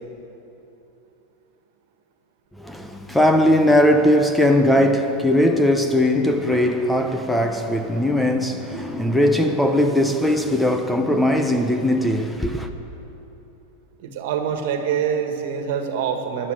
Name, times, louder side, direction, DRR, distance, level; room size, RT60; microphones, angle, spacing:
voice 1, 2.6-12.7, left 1 dB, 5° left, 0.9 m, -19 dB
voice 2, 14.0-16.5, right 8 dB, 65° right, 1.7 m, -25 dB
16.0 x 11.0 x 6.5 m
supercardioid pair, 135°, 0 cm